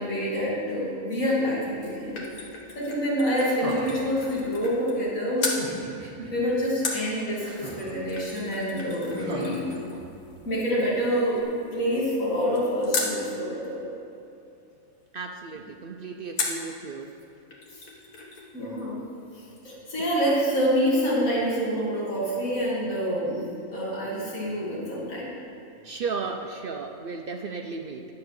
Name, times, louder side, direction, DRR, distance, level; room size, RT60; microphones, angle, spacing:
voice 1, 0.0-2.2 2.7-5.4 6.3-9.6 10.5-11.4 11.7-13.8 17.7-17.8 18.5-19.0 19.6-23.4 23.7-25.3, equal, 65° left, -8 dB, 2.9 m, -27 dB
sound 1, 1.5-5.1 5.4-5.7 6.8-13.2 16.4-16.7 17.2-17.3 17.5-18.5 18.8-18.9, left 3 dB, 85° left, 1.7 m, -36 dB
sound 2, 3.4-4.2 5.4-6.3 7.4-8.1 9.1-10.3 11.3-11.4, right 2 dB, 30° right, 1.0 m, -38 dB
voice 2, 15.1-17.1 25.8-28.0, right 4 dB, 65° right, 4 dB, 0.5 m, -34 dB
9.6 x 7.6 x 6.5 m, 2.6 s
omnidirectional pair, 1.5 m